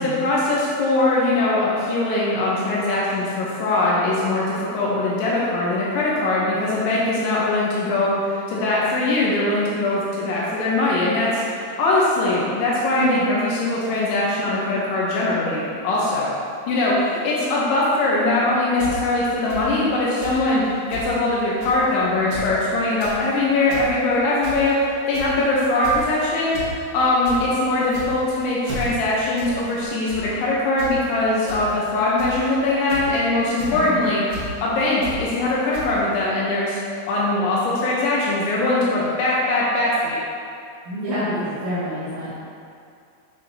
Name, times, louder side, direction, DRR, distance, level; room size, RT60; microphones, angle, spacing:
voice 1, 0.0-16.3 16.7-36.8 37.1-40.2, left 2 dB, 75° left, -6 dB, 3.0 m, -21 dB
sound 1, 18.8-18.9 19.5-19.6 20.2-20.4 20.6-20.7 20.9-21.1 21.6-21.8 22.2-22.5 22.8-23.2 23.5-23.9 24.4-24.7 25.1-25.4 25.8-26.1 26.5-26.7 27.0-27.4 27.9-28.3 28.6-28.9 29.4-29.5 29.8-30.2 30.8-30.9 31.5-31.6 32.2-32.4 32.9-33.2 33.6-33.7 34.3-34.4 35.0-35.2 35.7-35.8, right 1 dB, 55° right, 3.5 m, -34 dB
voice 2, 33.7-34.0 40.8-42.3, equal, 80° right, -11 dB, 1.6 m, -27 dB
8.7 x 7.3 x 2.9 m, 2.4 s
omnidirectional pair, 5.8 m